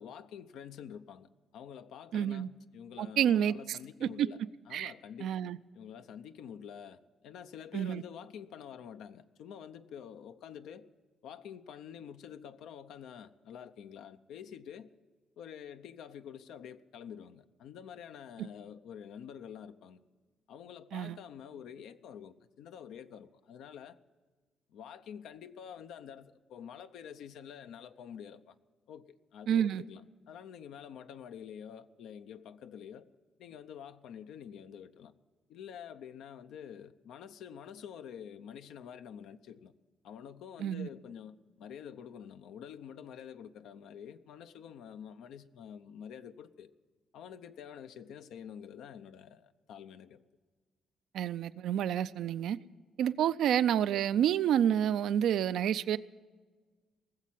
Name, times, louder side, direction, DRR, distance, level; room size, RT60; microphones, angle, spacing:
voice 1, 0.0-4.4 4.7-5.5 5.7-10.9 11.2-14.9 15.4-20.0 20.5-24.0 24.7-28.5 28.9-33.1 33.4-35.1 35.5-39.7 40.0-46.7 47.1-50.2, left 8 dB, 80° left, 10 dB, 0.6 m, -48 dB
voice 2, 2.1-2.5 3.0-4.3 4.7-4.9 5.2-5.6 7.7-8.0 20.9-21.2 29.5-29.8 40.6-40.9 51.1-52.6 53.0-56.0, right 9 dB, 75° right, 14 dB, 0.4 m, -29 dB
19.0 x 7.4 x 9.2 m, 1.4 s
cardioid pair, 90°, 0 cm